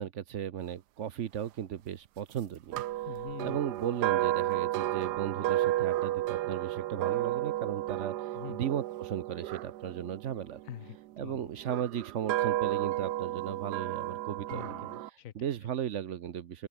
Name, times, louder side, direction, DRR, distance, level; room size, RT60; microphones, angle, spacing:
voice 1, 0.0-3.1 3.4-10.6 11.2-14.7 15.1-16.7, right 9 dB, 55° right, 0.9 m, -36 dB
sound 1, 2.7-10.9 11.6-15.1, right 15 dB, 85° right, 1.2 m, -32 dB
voice 2, 3.1-3.6 8.3-8.7 10.7-11.5 14.5-15.3, left 11 dB, 65° left, 1.0 m, -44 dB
open air
omnidirectional pair, 1.7 m